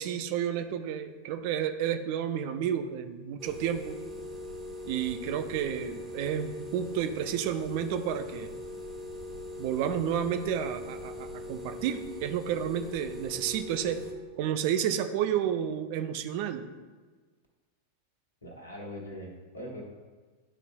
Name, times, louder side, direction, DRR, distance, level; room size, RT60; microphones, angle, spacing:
voice 1, 0.0-4.0 4.9-8.5 9.6-14.0 14.4-16.7, right 9 dB, 45° right, 7 dB, 0.4 m, -31 dB
sound 1, 3.4-14.1, left 1 dB, 15° right, 1.2 m, -41 dB
voice 2, 18.4-19.8, equal, 75° left, 0 dB, 1.4 m, -41 dB
11.0 x 4.1 x 2.2 m, 1.3 s
figure-of-eight pair, 90°, 0 cm